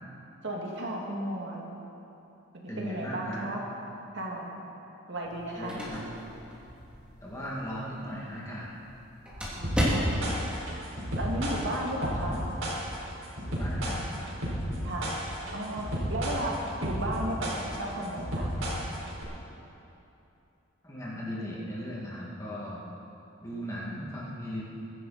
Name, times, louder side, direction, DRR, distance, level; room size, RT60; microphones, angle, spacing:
voice 1, 0.4-1.6 2.5-3.6 4.1-4.5 5.1-5.8 9.5-10.2 11.1-12.4 14.8-15.1 15.5-18.5, right 1 dB, 55° right, -2 dB, 2.2 m, -34 dB
voice 2, 2.7-3.5 5.5-6.0 7.2-8.7 13.5-14.5 20.8-22.8 23.4-24.6, equal, 15° left, -6 dB, 2.3 m, -38 dB
sound 1, 5.2-10.5, equal, 5° right, 2.7 m, -34 dB
sound 2, 9.6-19.2, equal, 75° right, 4.1 m, -32 dB
22.5 x 10.5 x 4.3 m, 2.9 s
head